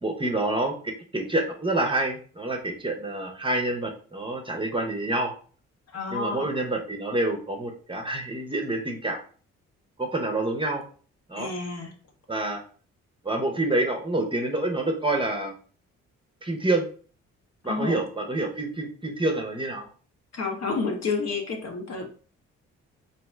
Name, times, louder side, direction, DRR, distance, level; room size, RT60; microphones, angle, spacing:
voice 1, 0.0-5.3 6.1-9.2 10.0-10.8 11.3-11.5 12.3-12.6 13.2-15.5 16.4-16.9 17.6-19.9, right 2 dB, 15° right, 2 dB, 0.7 m, -27 dB
voice 2, 5.9-6.5 11.4-11.9 17.6-18.0 20.3-22.1, left 4 dB, 55° left, 2 dB, 0.8 m, -30 dB
2.6 x 2.1 x 3.3 m, 0.42 s
supercardioid pair, 50°, 32 cm